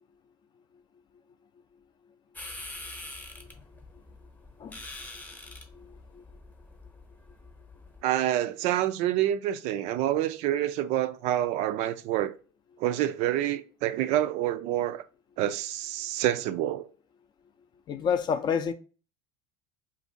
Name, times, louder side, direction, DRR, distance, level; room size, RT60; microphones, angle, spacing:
sound 1, 2.4-8.0, left 2 dB, 10° left, 0.8 m, -45 dB
voice 1, 5.7-6.2 17.9-18.7, left 7 dB, 35° left, 0.5 m, -29 dB
voice 2, 8.0-12.3 12.8-15.0 15.4-16.9, right 12 dB, 55° right, 0.4 m, -27 dB
2.5 x 2.3 x 3.9 m
supercardioid pair, 100°, 13 cm